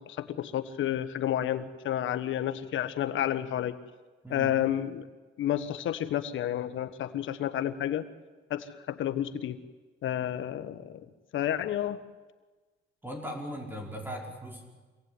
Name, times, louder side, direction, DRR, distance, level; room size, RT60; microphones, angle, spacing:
voice 1, 0.0-3.8 4.3-5.0 5.4-8.0 8.5-9.6 10.0-11.0 11.3-12.0, left 11 dB, 75° left, 11 dB, 1.5 m, -30 dB
voice 2, 13.0-14.6, equal, 10° right, 1 dB, 5.3 m, -38 dB
26.0 x 18.0 x 9.8 m, 1.3 s
cardioid pair, 90°, 20 cm